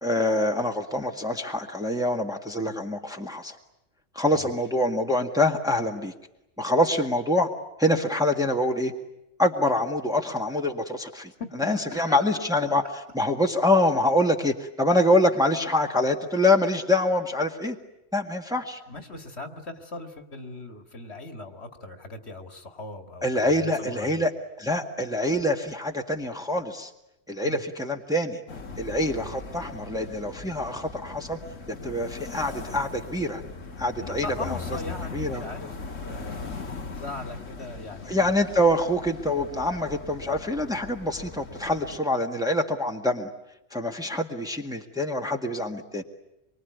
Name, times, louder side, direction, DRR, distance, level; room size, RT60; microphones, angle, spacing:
voice 1, 0.0-3.6 4.2-6.1 6.6-7.5 7.8-8.9 9.4-11.3 11.6-12.8 13.1-17.8 18.1-18.8 23.2-24.3 24.6-26.9 27.3-28.4 28.8-31.4 31.7-33.4 33.8-34.6 35.1-35.4 38.1-43.3 43.7-46.0, left 1 dB, 5° right, 2 dB, 1.7 m, -25 dB
voice 2, 11.4-12.4 18.9-24.3 27.4-27.6 34.0-36.4 36.9-38.3, left 2 dB, 60° left, 6 dB, 2.4 m, -39 dB
sound 1, 28.5-42.0, left 4 dB, 80° left, 2.1 m, -39 dB
26.0 x 24.0 x 9.4 m, 0.87 s
omnidirectional pair, 1.3 m